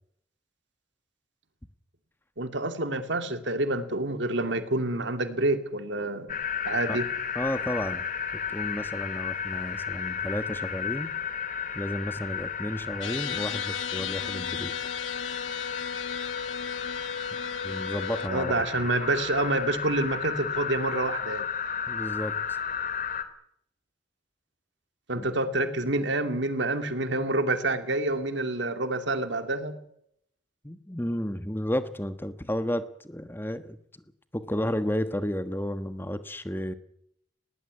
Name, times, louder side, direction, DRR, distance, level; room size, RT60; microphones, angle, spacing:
voice 1, 2.4-6.4 6.7-7.0 18.3-21.4 25.1-29.8, right 2 dB, 70° right, 9 dB, 2.5 m, -28 dB
sound 1, 6.3-23.2, left 7 dB, 45° left, 2.8 m, -34 dB
voice 2, 7.3-8.0 8.5-11.1 11.7-14.7 17.6-18.6 21.9-22.6 25.1-25.3 30.6-33.8 34.3-36.7, equal, 10° left, 11 dB, 1.3 m, -32 dB
sound 2, 13.0-18.3, left 7 dB, 85° left, 1.4 m, -35 dB
20.5 x 18.0 x 9.6 m, 0.71 s
head